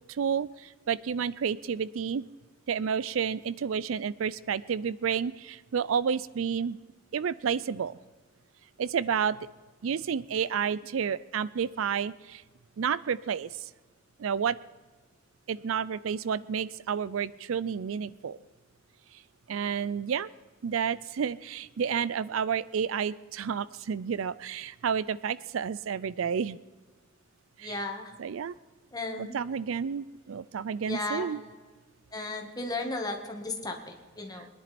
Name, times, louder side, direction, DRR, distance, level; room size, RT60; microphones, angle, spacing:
voice 1, 0.1-2.2 2.7-6.8 7.1-8.0 8.8-9.5 9.8-12.4 12.8-13.7 14.2-14.6 15.5-18.4 19.1-19.2 19.5-20.3 20.6-26.6 27.6-27.8 28.2-28.5 29.2-31.4 34.3-34.5, right 7 dB, 80° right, 19 dB, 0.4 m, -30 dB
voice 2, 27.6-28.1 28.9-29.4 30.9-31.3 32.1-34.5, left 2 dB, 20° left, 3 dB, 1.7 m, -35 dB
22.5 x 10.5 x 4.3 m, 1.3 s
head